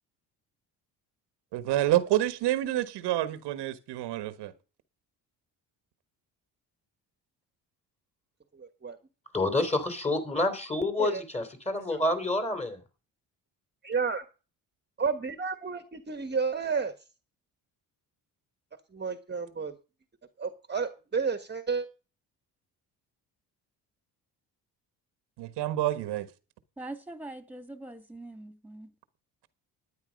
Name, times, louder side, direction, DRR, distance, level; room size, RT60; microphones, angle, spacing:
voice 1, 1.5-4.5 25.4-26.3, right 14 dB, 85° right, 1.3 m, -28 dB
voice 2, 8.5-9.0 11.0-11.2 11.9-12.0 13.8-14.2 15.0-16.9 18.9-19.7 20.4-21.8, right 5 dB, 25° right, 1.4 m, -31 dB
voice 3, 9.3-12.8, left 2 dB, 15° left, 3.5 m, -28 dB
voice 4, 26.8-28.9, right 2 dB, 5° right, 2.3 m, -42 dB
13.0 x 9.6 x 5.2 m
cardioid pair, 85°, 40 cm